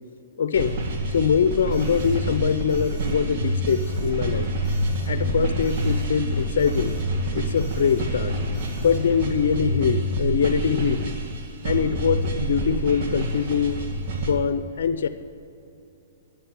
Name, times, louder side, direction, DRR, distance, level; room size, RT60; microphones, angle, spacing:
voice 1, 0.4-0.7 1.1-4.5 5.1-7.0 7.3-8.3 8.8-11.1 11.6-13.9 14.3-15.1, left 7 dB, 65° left, 11 dB, 0.5 m, -23 dB
sound 1, 0.5-14.3, right 1 dB, 55° right, 2.0 m, -27 dB
Alarm, 1.5-9.3, equal, 25° right, 2.9 m, -44 dB
10.5 x 7.8 x 9.7 m, 2.7 s
hypercardioid pair, 135°, 0 cm